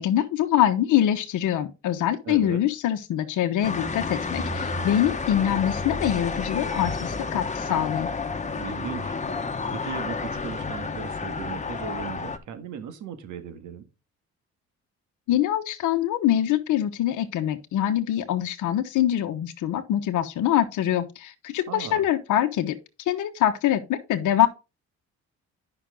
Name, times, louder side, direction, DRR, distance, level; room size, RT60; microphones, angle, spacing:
voice 1, 0.0-8.1 15.3-22.8 23.1-24.5, left 11 dB, 85° left, 1.1 m, -24 dB
voice 2, 2.2-2.6 8.5-9.1 9.4-13.9 21.7-22.0, right 7 dB, 75° right, 1.7 m, -37 dB
sound 1, 3.6-12.4, left 4 dB, 25° left, 1.2 m, -30 dB
10.0 x 5.9 x 3.7 m
cardioid pair, 90°, 30 cm